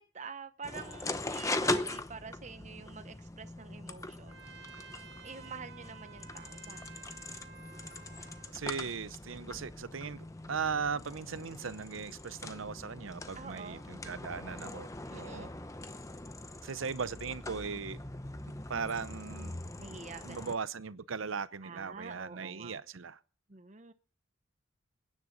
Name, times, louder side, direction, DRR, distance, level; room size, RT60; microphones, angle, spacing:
voice 1, 0.0-4.6 5.2-7.0 9.4-9.6 13.3-13.8 15.1-15.5 19.8-20.5 21.6-22.8 23.5-23.9, right 4 dB, 35° right, 0.8 m, -47 dB
sound 1, 0.6-20.5, left 2 dB, 15° left, 0.7 m, -41 dB
Trumpet, 4.3-8.5, right 6 dB, 55° right, 1.6 m, -53 dB
voice 2, 8.5-14.9 15.2-15.5 16.6-18.0 18.7-19.6 20.2-23.2, right 5 dB, 80° right, 0.7 m, -38 dB
27.5 x 10.0 x 4.0 m
head